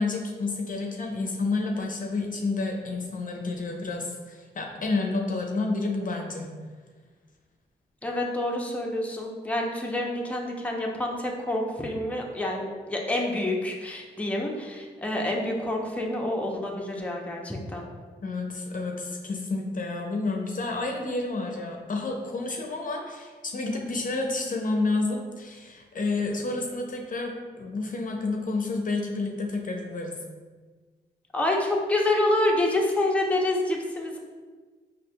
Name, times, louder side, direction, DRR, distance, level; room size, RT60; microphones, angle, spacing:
voice 1, 0.0-6.5 18.2-30.2, left 3 dB, 50° left, 1 dB, 0.6 m, -30 dB
voice 2, 8.0-17.9 31.3-34.2, left 1 dB, 5° left, -1 dB, 0.7 m, -27 dB
4.1 x 2.8 x 2.2 m, 1.4 s
supercardioid pair, 45°, 18 cm